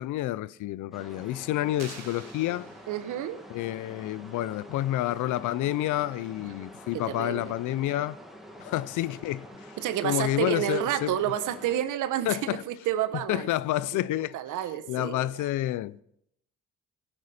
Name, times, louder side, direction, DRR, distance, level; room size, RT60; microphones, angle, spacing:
voice 1, 0.0-2.7 3.5-8.2 8.6-11.3 12.3-12.6 13.3-14.4 14.9-16.0, left 14 dB, 80° left, 0.5 m, -29 dB
sound 1, 0.9-11.8, equal, ahead, 2.1 m, -47 dB
sound 2, 1.8-3.3, right 7 dB, 60° right, 1.7 m, -47 dB
voice 2, 2.9-3.4 6.9-7.5 9.8-13.5 14.3-15.3, right 11 dB, 85° right, 1.0 m, -30 dB
17.0 x 9.9 x 4.2 m
cardioid pair, 90°, 30 cm